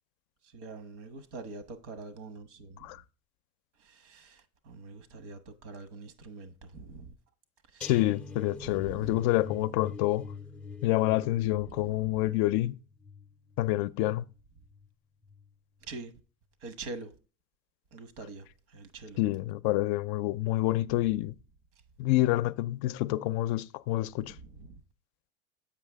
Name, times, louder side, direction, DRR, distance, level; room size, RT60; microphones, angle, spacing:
voice 1, 0.4-3.0 3.8-7.1 7.7-7.9 8.6-9.1 11.6-12.0 15.8-16.1 16.6-17.2 17.9-19.2 24.1-24.8, right 3 dB, 80° right, 1.4 m, -45 dB
voice 2, 7.8-10.3 10.8-12.8 13.6-14.2 19.2-21.3 22.0-24.3, left 16 dB, 60° left, 0.5 m, -27 dB
sound 1, 7.8-14.9 15.2-15.5 15.9-16.0, left 4 dB, 5° left, 0.5 m, -45 dB
7.1 x 5.6 x 3.4 m
supercardioid pair, 135°, 36 cm